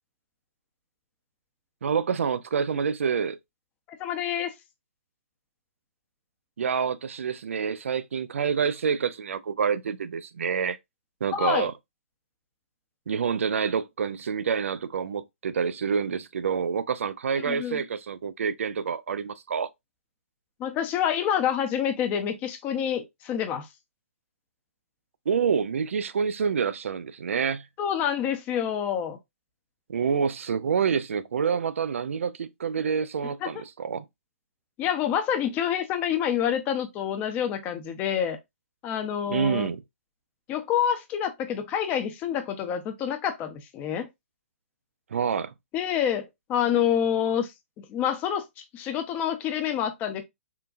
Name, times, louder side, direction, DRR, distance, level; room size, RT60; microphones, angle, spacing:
voice 1, 1.8-3.4 6.6-10.8 11.2-11.7 13.1-19.7 25.3-27.7 29.9-34.0 39.3-39.8 45.1-45.5, right 6 dB, 75° right, 0.4 m, -27 dB
voice 2, 4.0-4.5 11.3-11.7 17.4-17.8 20.6-23.7 27.8-29.2 33.4-33.6 34.8-38.4 38.8-39.7 40.5-44.1 45.7-47.5 47.8-50.2, left 9 dB, 25° left, 0.6 m, -27 dB
3.8 x 2.2 x 2.4 m
hypercardioid pair, 140°, 7 cm